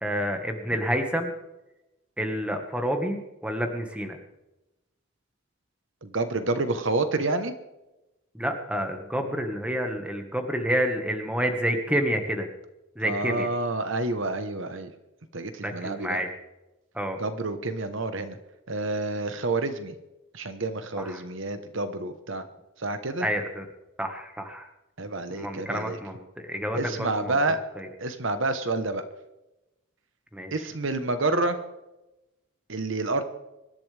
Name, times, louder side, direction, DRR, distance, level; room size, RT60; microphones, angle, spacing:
voice 1, 0.0-1.3 2.2-4.2 8.3-12.5 12.9-13.5 15.6-16.3 16.9-17.2 21.0-21.2 23.2-23.7 24.0-24.7 25.3-27.4 27.8-27.9 30.3-30.5, equal, 5° right, 4 dB, 1.5 m, -29 dB
voice 2, 6.0-7.5 13.0-14.9 15.3-16.2 17.2-18.4 18.7-19.9 20.3-22.4 22.8-23.3 25.0-26.0 26.7-27.6 28.0-29.0 30.5-31.6 32.7-33.2, right 2 dB, 60° right, 9 dB, 1.1 m, -28 dB
25.5 x 11.5 x 3.4 m, 0.98 s
head